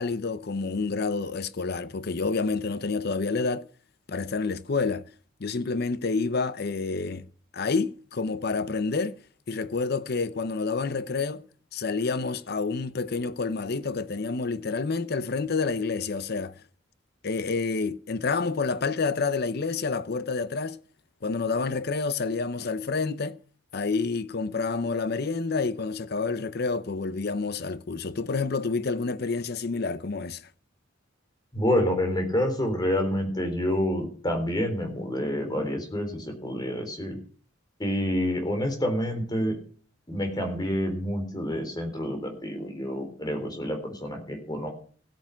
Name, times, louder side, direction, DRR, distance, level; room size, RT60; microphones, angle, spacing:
voice 1, 0.0-3.6 4.1-5.1 5.4-7.3 7.5-9.2 9.5-11.4 11.7-16.5 17.2-20.8 21.2-23.4 23.7-30.4, left 4 dB, 55° left, 0.7 m, -28 dB
voice 2, 31.5-37.2 37.8-39.6 40.1-44.7, equal, 20° left, 3.6 m, -28 dB
16.0 x 9.0 x 5.7 m
head